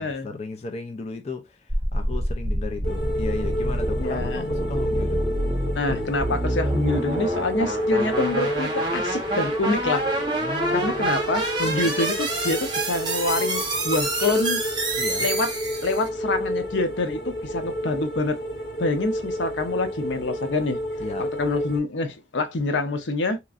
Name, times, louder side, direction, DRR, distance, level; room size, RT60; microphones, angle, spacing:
voice 1, 0.0-5.3 10.4-11.2 11.6-12.0 15.0-15.3 21.0-21.3, left 3 dB, 35° left, 0.4 m, -35 dB
sound 1, 1.7-16.1, right 1 dB, 25° right, 0.9 m, -27 dB
sound 2, 2.8-21.8, equal, 55° left, 1.8 m, -30 dB
voice 2, 4.0-4.5 5.8-10.1 10.7-14.6 15.2-15.5 15.8-18.4 18.8-20.8 21.2-23.4, left 2 dB, 85° left, 0.7 m, -26 dB
3.0 x 2.4 x 2.4 m
head